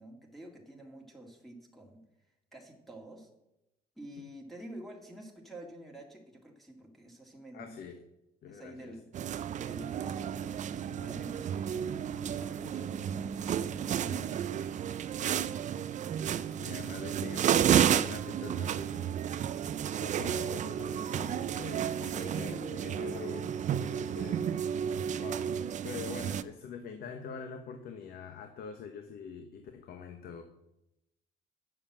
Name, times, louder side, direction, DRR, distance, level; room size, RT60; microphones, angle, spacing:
voice 1, 0.0-2.0 2.5-3.3 4.0-7.7 8.5-9.0 9.6-14.5 22.0-23.2, right 1 dB, ahead, -2 dB, 2.0 m, -48 dB
voice 2, 7.5-8.0 8.4-9.0 16.4-19.3 20.0-24.8 25.1-25.6 25.8-30.4, left 6 dB, 65° left, 6 dB, 1.1 m, -45 dB
Beer shop in Paris, 9.1-26.4, right 9 dB, 45° right, 0.5 m, -32 dB
9.4 x 6.9 x 7.2 m, 0.89 s
cardioid pair, 110°, 17 cm